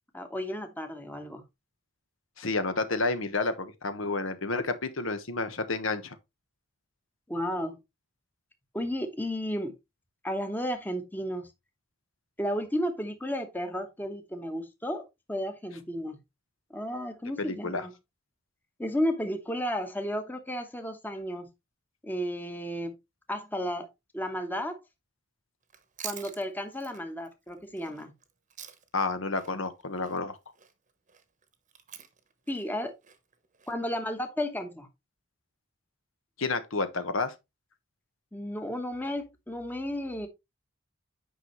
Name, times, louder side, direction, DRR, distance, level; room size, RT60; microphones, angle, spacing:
voice 1, 0.1-1.4 7.3-7.8 8.7-9.7 10.2-11.5 12.4-16.2 16.7-17.9 18.8-21.5 22.0-22.9 23.3-23.9 24.1-24.8 26.0-28.1 32.5-32.9 33.7-34.9 38.3-40.3, equal, 10° left, 1.1 m, -33 dB
voice 2, 2.4-6.1 17.4-17.8 28.9-30.4 36.4-37.3, left 3 dB, 75° left, 1.2 m, -30 dB
Chewing mastication, 25.6-29.1 29.4-33.7, right 9 dB, 40° right, 1.1 m, -47 dB
9.1 x 5.6 x 3.1 m
head